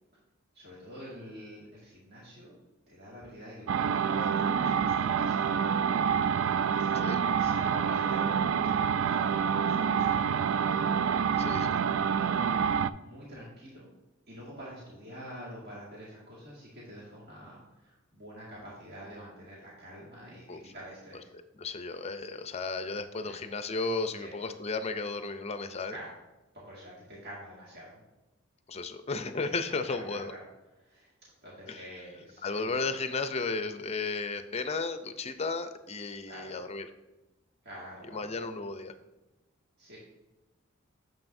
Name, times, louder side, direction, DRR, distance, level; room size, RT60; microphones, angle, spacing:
voice 1, 0.5-2.6 2.9-5.8 6.7-8.3 9.0-9.3 9.6-10.9 11.4-12.5 13.0-13.9 14.3-21.3 23.2-23.4 24.2-24.4 25.9-26.2 26.5-28.0 29.6-30.4 30.7-31.1 31.4-32.8 36.3-36.6 37.6-38.4 39.8-40.0, equal, 50° right, -6 dB, 2.0 m, -47 dB
sound 1, 3.7-12.9, right 7 dB, 70° right, 0.3 m, -27 dB
voice 2, 11.4-11.7 20.5-20.6 21.6-26.0 28.7-30.3 31.7-31.8 32.4-36.9 38.1-38.9, left 3 dB, 30° left, 9 dB, 0.5 m, -34 dB
9.1 x 7.5 x 2.6 m, 1.1 s
head